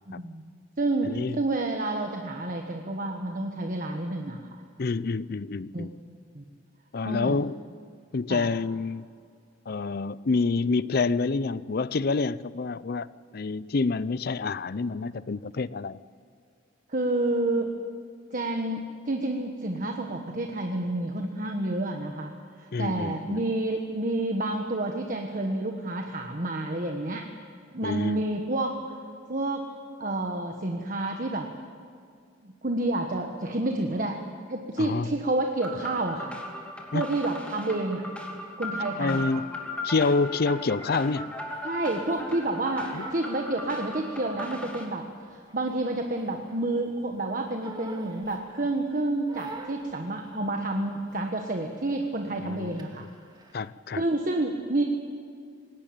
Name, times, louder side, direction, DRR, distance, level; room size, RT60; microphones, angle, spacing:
voice 1, 0.1-0.4 0.8-4.4 5.7-5.9 6.3-6.4 7.0-7.4 8.3-8.5 16.9-17.7 18.3-27.3 27.7-28.8 29.3-29.6 30.0-31.5 32.4-34.2 34.5-36.4 36.9-38.0 38.6-39.2 41.6-45.0 45.3-53.1 54.0-54.8, right 2 dB, 45° right, 3 dB, 1.3 m, -29 dB
voice 2, 1.1-1.4 4.8-5.9 6.9-7.5 8.1-9.1 9.7-13.1 13.3-16.0 22.7-23.4 27.8-28.2 34.8-35.1 36.9-37.1 39.0-39.5 39.8-41.3 42.9-43.1 52.4-52.7 53.0-53.1 53.5-54.0, left 4 dB, 55° left, 18 dB, 0.5 m, -27 dB
sound 1, 35.6-44.8, left 1 dB, 5° left, 2.8 m, -37 dB
Crying sobbing, 41.5-44.2 44.5-46.7 47.1-48.8 49.3-51.2 51.5-51.8 52.1-53.7, right 2 dB, 25° right, 2.2 m, -46 dB
20.5 x 18.0 x 8.8 m, 2.3 s
head